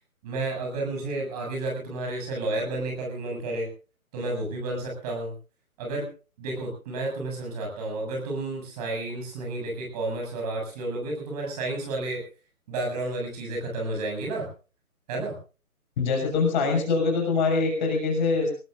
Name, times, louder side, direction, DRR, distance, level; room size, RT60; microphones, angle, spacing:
voice 1, 0.2-3.7 4.1-5.4 5.8-6.1 6.4-12.2 12.7-14.5 15.1-15.4, right 2 dB, 25° right, 1 dB, 7.2 m, -31 dB
voice 2, 16.0-18.5, left 4 dB, 30° left, 2 dB, 6.5 m, -24 dB
24.5 x 19.5 x 2.6 m, 0.36 s
figure-of-eight pair, 140°, 43 cm